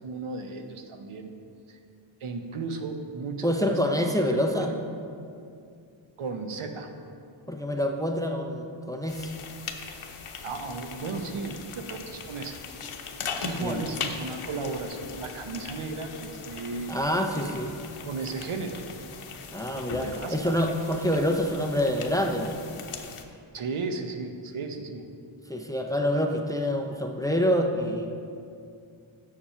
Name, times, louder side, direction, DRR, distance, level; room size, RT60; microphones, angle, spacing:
voice 1, 0.0-1.3 1.7-1.8 2.2-3.8 4.1-4.8 6.2-6.9 10.4-12.6 13.4-17.0 17.3-17.7 18.0-18.8 19.7-20.6 23.5-25.1, right 4 dB, 80° right, 5 dB, 0.9 m, -35 dB
voice 2, 3.4-4.7 7.5-9.3 13.5-13.8 16.9-17.8 19.5-22.6 25.5-28.1, equal, 5° left, 3 dB, 0.6 m, -26 dB
sound 1, 9.1-23.2, left 5 dB, 80° left, 0.8 m, -40 dB
7.2 x 7.2 x 5.6 m, 2.4 s
wide cardioid pair, 95°, 50 cm